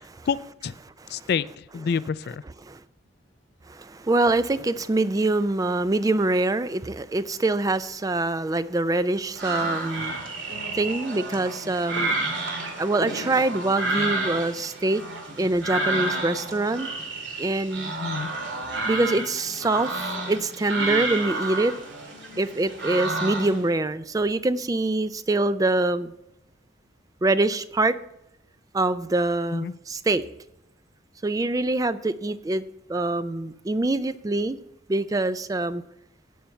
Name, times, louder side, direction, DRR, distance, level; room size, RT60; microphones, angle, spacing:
voice 1, 0.3-0.8 1.1-2.4 18.0-18.3 29.5-29.7, left 6 dB, 55° left, 18 dB, 0.3 m, -28 dB
voice 2, 3.7-10.1 10.7-12.1 12.8-15.0 15.4-16.9 17.4-17.9 18.9-21.7 22.4-26.1 27.2-28.0 28.7-30.2 31.2-32.6 32.9-34.6 34.9-35.8, right 2 dB, 20° right, 14 dB, 0.3 m, -24 dB
sound 1, 9.4-23.6, right 2 dB, 75° right, 2.5 m, -30 dB
16.5 x 5.9 x 4.3 m, 0.85 s
head